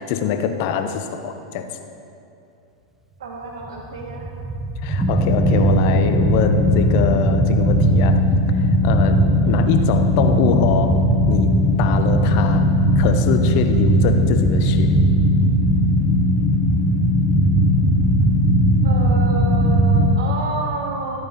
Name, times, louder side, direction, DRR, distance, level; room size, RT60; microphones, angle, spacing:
voice 1, 0.0-1.7 4.8-8.2 8.8-11.0 11.3-11.5 11.8-12.7 13.0-14.9, left 7 dB, 50° left, 8 dB, 0.7 m, -24 dB
voice 2, 3.2-4.3 5.5-5.7 9.4-9.7 18.8-21.2, right 3 dB, 65° right, 0 dB, 0.9 m, -29 dB
sound 1, 3.8-20.2, equal, 10° right, 0.8 m, -17 dB
13.5 x 9.0 x 2.8 m, 2.7 s
figure-of-eight pair, 95°, 3 cm